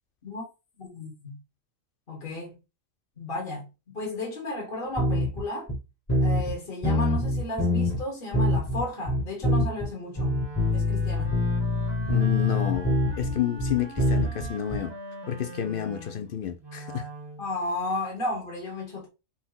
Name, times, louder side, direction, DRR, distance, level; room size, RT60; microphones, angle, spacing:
voice 1, 0.8-1.4 2.1-2.5 3.2-5.7 6.2-10.4 10.7-11.4 17.4-19.1, left 2 dB, 45° left, 1.5 m, -33 dB
sound 1, 5.0-5.4 5.7-5.8 6.1-6.5 6.8-8.0 8.3-9.9 10.2-14.8, left 2 dB, 20° left, 1.6 m, -24 dB
Wind instrument woodwind instrument, 10.1-17.5, right 1 dB, 25° right, 0.7 m, -42 dB
voice 2, 12.1-12.9 13.2-14.9 15.3-17.1, left 9 dB, 60° left, 0.6 m, -30 dB
4.1 x 2.9 x 3.9 m
omnidirectional pair, 1.4 m